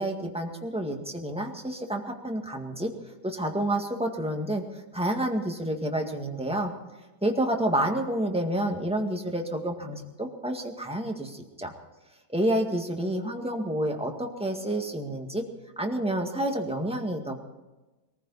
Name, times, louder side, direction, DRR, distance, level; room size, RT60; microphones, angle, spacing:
voice 1, 0.0-2.9 3.2-4.6 4.9-6.7 7.2-11.7 12.3-15.4 15.8-17.4, right 1 dB, 5° right, 2 dB, 1.8 m, -29 dB
22.0 x 15.0 x 4.2 m, 1.1 s
omnidirectional pair, 1.8 m